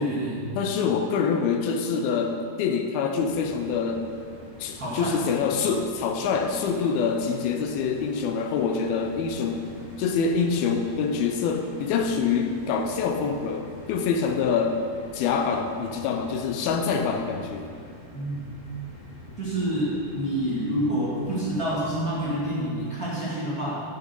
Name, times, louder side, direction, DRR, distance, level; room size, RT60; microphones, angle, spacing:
voice 1, 0.0-0.4 4.7-5.2 18.1-18.4 19.4-23.7, right 1 dB, 40° right, -9 dB, 1.3 m, -27 dB
voice 2, 0.6-4.1 4.6-9.6 10.0-14.8 15.1-17.7, left 5 dB, 85° left, 5 dB, 2.2 m, -25 dB
sound 1, 3.2-22.6, left 1 dB, 35° left, 1.9 m, -46 dB
10.5 x 8.6 x 5.3 m, 2.3 s
omnidirectional pair, 5.0 m